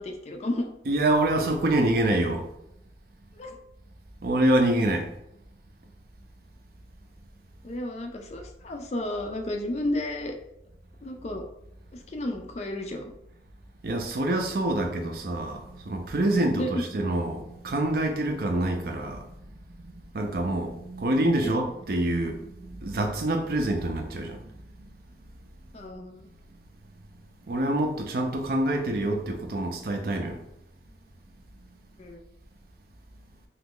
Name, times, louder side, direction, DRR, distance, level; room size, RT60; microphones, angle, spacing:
voice 1, 0.0-0.7 3.4-3.5 7.6-10.3 11.0-11.5 12.1-13.0 16.6-16.7 21.4-21.5 25.7-26.3 32.0-32.2, left 1 dB, 35° left, 4 dB, 0.3 m, -32 dB
voice 2, 0.9-2.5 4.2-5.1 13.8-24.9 27.5-30.4 31.6-31.7, right 1 dB, 55° right, 3 dB, 0.4 m, -26 dB
2.9 x 2.4 x 3.6 m, 0.82 s
head